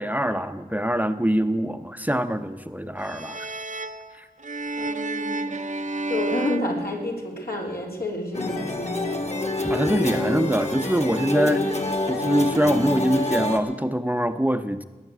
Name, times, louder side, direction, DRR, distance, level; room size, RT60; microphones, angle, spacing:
voice 1, 0.0-3.5 4.1-4.3 9.6-11.7 12.1-14.8, equal, 10° right, 9 dB, 0.8 m, -24 dB
sound 1, 3.0-7.6, right 2 dB, 50° right, 0.7 m, -31 dB
voice 2, 4.8-5.6 6.1-9.2 11.3-11.7, left 1 dB, 75° left, -1 dB, 3.6 m, -30 dB
sound 2, 8.3-13.6, left 2 dB, 45° left, 2.0 m, -27 dB
20.0 x 8.9 x 7.9 m, 1.3 s
wide cardioid pair, 50°, 16 cm